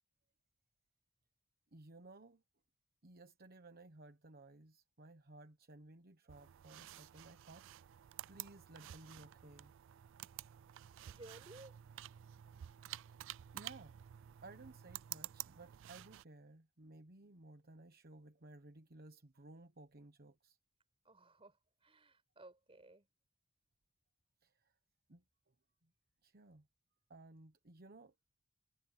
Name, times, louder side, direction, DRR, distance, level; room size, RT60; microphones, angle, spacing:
voice 1, 1.7-2.4 3.0-7.7 8.3-9.7 13.1-13.2 13.5-14.0 14.4-20.6 24.4-24.5 25.1-25.2 26.2-26.7 27.1-28.1, right 2 dB, 50° right, 1.1 m, -57 dB
sound 1, 6.3-16.2, right 13 dB, 65° right, 0.3 m, -51 dB
voice 2, 11.1-11.8 21.0-23.1, right 2 dB, 25° right, 5.4 m, -58 dB
head